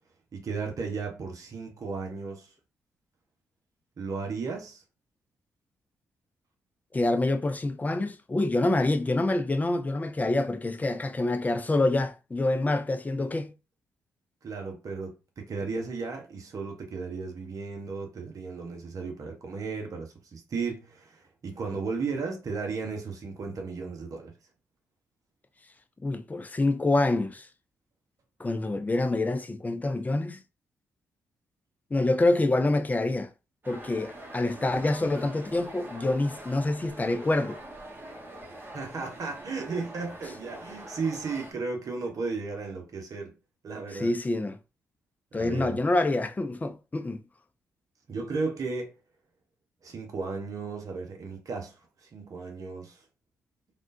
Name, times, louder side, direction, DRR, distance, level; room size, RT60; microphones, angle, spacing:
voice 1, 0.3-2.5 4.0-4.8 14.4-24.3 38.7-43.3 43.6-44.1 45.3-45.8 48.1-48.9 49.8-53.0, right 4 dB, 55° right, 1.0 m, -35 dB
voice 2, 6.9-13.5 26.0-27.5 28.4-30.4 31.9-33.3 33.7-37.6 43.9-44.6 45.3-47.2, left 2 dB, 20° left, 0.5 m, -26 dB
sound 1, 33.6-41.5, right 1 dB, 30° right, 1.2 m, -44 dB
3.5 x 2.4 x 2.7 m
hypercardioid pair, 45°, 7 cm